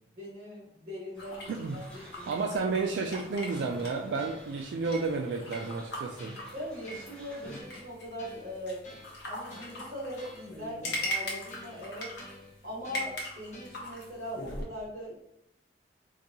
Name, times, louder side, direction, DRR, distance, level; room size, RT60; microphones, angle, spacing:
voice 1, 0.1-1.5 1.7-2.5 6.5-8.9 9.3-12.1 12.6-15.2, equal, 50° right, -8 dB, 1.3 m, -40 dB
sound 1, 1.1-7.6, equal, 5° left, 0.8 m, -55 dB
sound 2, 1.2-14.6, equal, 80° left, 0.9 m, -41 dB
voice 2, 2.3-6.4, right 4 dB, 80° right, 2 dB, 0.3 m, -31 dB
sound 3, 3.5-14.1, left 1 dB, 40° left, 0.9 m, -52 dB
3.7 x 2.6 x 2.7 m, 0.77 s
head